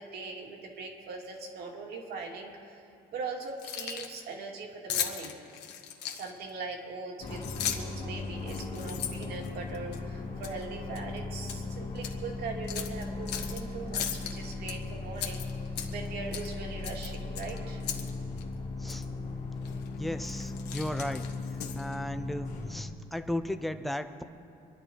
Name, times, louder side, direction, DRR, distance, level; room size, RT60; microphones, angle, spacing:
voice 1, 0.0-2.9 3.1-5.3 6.1-7.4 7.7-15.4 15.9-17.8, right 4 dB, 70° right, 1 dB, 2.7 m, -40 dB
Keys jangling, 3.5-4.2 4.9-6.5 7.3-8.0 8.4-10.0 10.4-10.6 11.0-11.6 12.0-12.1 12.7-13.6 13.9-14.7 15.2-16.1 16.3-16.5 16.8-18.1 18.4-18.5 18.9-19.0 19.6-19.9 20.2-22.0, left 9 dB, 80° left, 1.6 m, -37 dB
sound 1, 7.2-22.9, left 3 dB, 45° left, 2.3 m, -37 dB
voice 2, 20.0-21.2 21.8-24.2, left 1 dB, ahead, 8 dB, 0.8 m, -35 dB
26.0 x 11.0 x 4.7 m, 2.8 s
cardioid pair, 110°, 17 cm